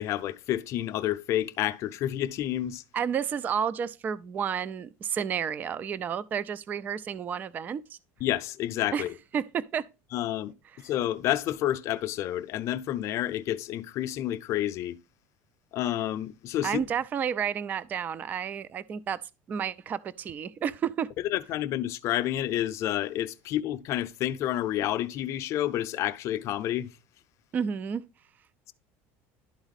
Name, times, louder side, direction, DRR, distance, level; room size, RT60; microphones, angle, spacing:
voice 1, 0.0-2.8 8.2-9.1 10.1-15.0 15.7-16.8 21.2-26.9, left 13 dB, 45° left, 0.5 m, -29 dB
voice 2, 2.9-8.0 8.9-9.0 9.3-9.9 16.6-19.2 19.5-21.1 27.5-28.0, right 7 dB, 25° right, 0.3 m, -31 dB
11.5 x 4.0 x 4.0 m
cardioid pair, 150°, 7 cm